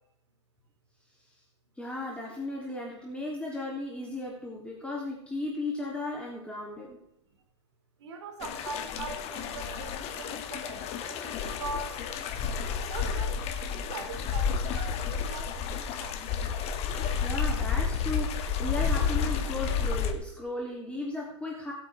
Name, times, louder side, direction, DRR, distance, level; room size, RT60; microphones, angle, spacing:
voice 1, 1.8-7.0 17.2-21.7, left 2 dB, 10° left, -4 dB, 3.3 m, -35 dB
voice 2, 8.0-12.0 12.9-16.2, right 3 dB, 75° right, 5 dB, 2.8 m, -41 dB
sound 1, 8.4-20.1, left 6 dB, 45° left, 1.8 m, -31 dB
20.5 x 8.6 x 3.6 m, 0.80 s
hypercardioid pair, 95°, 15 cm